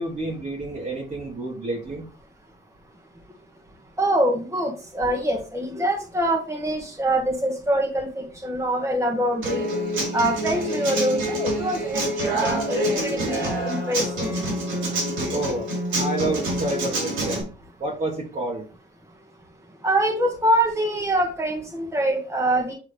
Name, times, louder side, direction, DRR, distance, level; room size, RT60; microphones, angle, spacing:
voice 1, 0.0-2.0 15.3-17.5 17.8-18.6, right 2 dB, 40° right, 1.5 m, -29 dB
voice 2, 4.0-9.7 10.1-14.3 19.8-22.7, right 1 dB, 15° right, 1.3 m, -24 dB
Human voice / Acoustic guitar, 9.4-17.4, right 1 dB, 85° right, 3.0 m, -26 dB
7.9 x 3.6 x 3.3 m
cardioid pair, 90°, 20 cm